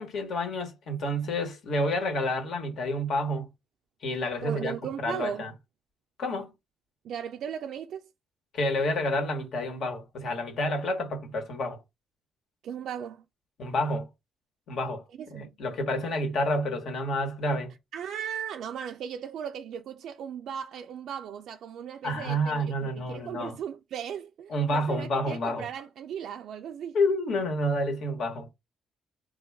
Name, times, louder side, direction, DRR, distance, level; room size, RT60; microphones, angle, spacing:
voice 1, 0.0-3.5 4.0-4.7 5.0-5.5 6.2-6.5 8.5-11.8 13.6-14.1 14.7-15.0 15.3-17.7 22.0-23.5 24.5-25.7 26.9-28.5, left 1 dB, 65° left, 1.2 m, -29 dB
voice 2, 4.4-5.4 7.0-8.1 12.6-13.2 15.2-15.5 17.9-27.0, right 8 dB, 75° right, 0.3 m, -37 dB
3.6 x 2.3 x 3.4 m
cardioid pair, 90°, 0 cm